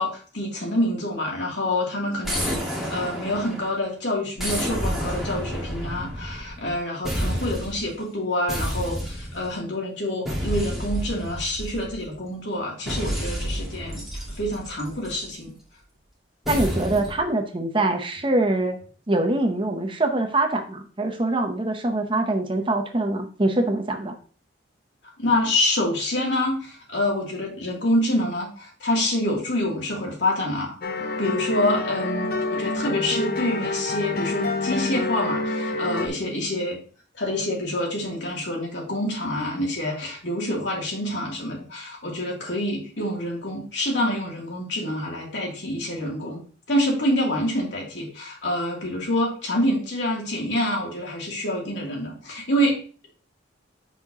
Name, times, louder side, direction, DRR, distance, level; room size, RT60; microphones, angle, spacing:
voice 1, 0.0-14.0 14.3-15.5 25.2-30.8 31.2-36.8 37.1-46.4 46.7-52.8, left 1 dB, 65° left, -2 dB, 2.7 m, -27 dB
sound 1, 2.2-3.8 4.4-6.7 7.0-7.9 8.5-9.5 10.2-12.1 12.9-15.3 16.4-17.2, equal, ahead, 1.6 m, -30 dB
voice 2, 16.5-18.8 19.1-24.2, right 2 dB, 25° right, 5 dB, 0.7 m, -24 dB
sound 2, 30.8-36.1, left 2 dB, 50° left, 0.7 m, -27 dB
7.0 x 5.7 x 2.8 m, 0.40 s
head